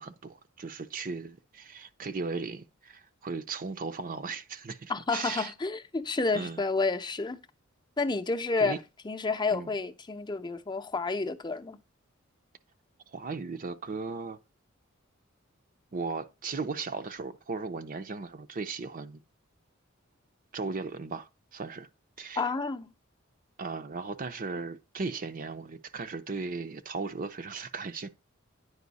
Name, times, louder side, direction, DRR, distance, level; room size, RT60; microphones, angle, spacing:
voice 1, 0.0-5.5 6.3-6.6 8.6-8.8 9.5-9.7 13.1-14.4 15.9-19.2 20.5-21.9 22.2-22.4 23.6-28.1, right 4 dB, 40° right, 0.6 m, -37 dB
voice 2, 4.9-7.4 8.0-8.8 9.0-11.8 22.4-22.9, left 3 dB, 20° left, 0.7 m, -30 dB
9.5 x 5.3 x 4.1 m
head